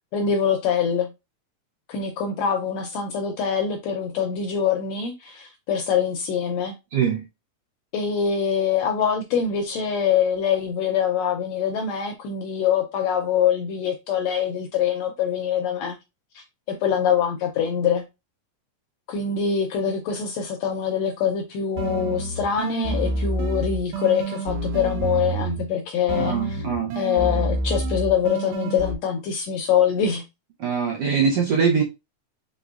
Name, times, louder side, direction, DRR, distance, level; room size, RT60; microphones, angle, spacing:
voice 1, 0.1-1.1 1.9-6.7 7.9-16.0 16.3-18.0 19.1-26.6 27.0-30.2, left 7 dB, 80° left, 1.6 m, -24 dB
voice 2, 6.9-7.3 26.2-27.0 30.6-31.8, right 6 dB, 65° right, 1.5 m, -22 dB
sound 1, 21.8-25.7 26.1-28.9, right 2 dB, 85° right, 2.4 m, -28 dB
5.2 x 3.7 x 2.4 m
omnidirectional pair, 3.6 m